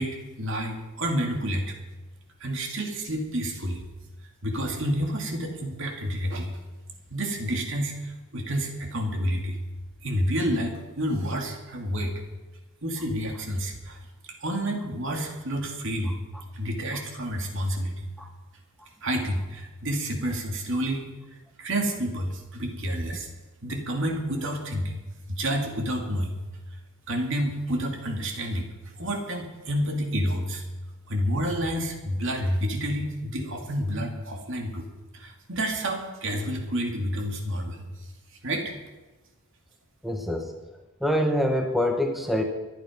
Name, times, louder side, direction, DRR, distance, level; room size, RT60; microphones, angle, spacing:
voice 1, 0.0-1.7 2.4-3.8 4.4-6.5 7.1-9.6 10.0-12.2 12.8-14.0 14.4-16.2 16.5-18.1 19.0-21.1 21.6-23.3 23.6-25.0 25.3-26.4 27.1-28.7 29.0-30.6 31.1-34.9 35.1-37.8 38.4-38.7, equal, 60° right, 2 dB, 2.6 m, -29 dB
voice 2, 40.0-40.6 41.0-42.4, equal, ahead, 3 dB, 1.0 m, -25 dB
24.0 x 9.2 x 5.3 m, 1.2 s
head